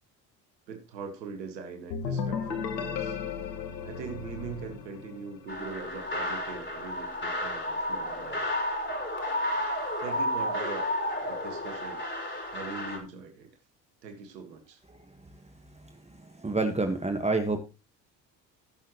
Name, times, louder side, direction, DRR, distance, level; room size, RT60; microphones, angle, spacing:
voice 1, 0.7-3.2 3.8-8.5 10.0-10.9 11.1-13.5 14.0-14.8, right 5 dB, 85° right, 5 dB, 1.7 m, -42 dB
sound 1, 1.9-5.6, left 6 dB, 90° left, 1.3 m, -34 dB
sound 2, 5.5-13.0, left 1 dB, 20° left, 4.9 m, -32 dB
voice 2, 15.8-17.6, right 3 dB, 15° right, 5 dB, 1.5 m, -29 dB
19.0 x 6.7 x 3.0 m, 0.29 s
hypercardioid pair, 60°, 49 cm